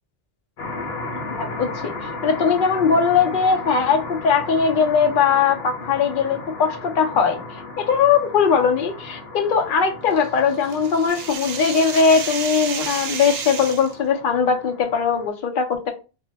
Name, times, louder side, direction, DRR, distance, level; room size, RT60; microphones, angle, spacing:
sound 1, 0.6-15.3, left 2 dB, 85° left, 1.0 m, -35 dB
voice 1, 1.3-1.9 2.2-7.4 7.8-15.9, left 6 dB, 60° left, 0.8 m, -20 dB
sound 2, 10.1-13.9, right 7 dB, 80° right, 0.8 m, -31 dB
2.7 x 2.2 x 3.3 m
omnidirectional pair, 1.0 m